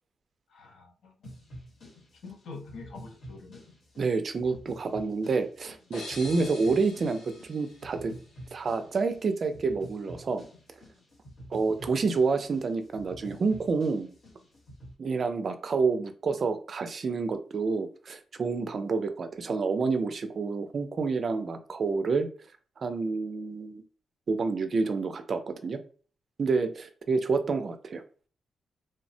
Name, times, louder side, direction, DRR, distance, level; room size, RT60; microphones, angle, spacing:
voice 1, 0.5-1.1 2.2-3.6, left 4 dB, 70° left, 3 dB, 0.6 m, -45 dB
sound 1, 1.2-14.9, equal, 50° left, 1.0 m, -48 dB
voice 2, 4.0-8.1 8.5-10.4 11.5-14.1 15.0-22.3 22.8-23.8 24.3-25.8 26.4-28.0, right 4 dB, 40° right, 8 dB, 0.3 m, -28 dB
sound 2, 5.9-8.7, left 2 dB, 90° left, 1.2 m, -45 dB
3.2 x 2.0 x 2.6 m, 0.40 s
wide cardioid pair, 170°, 0 cm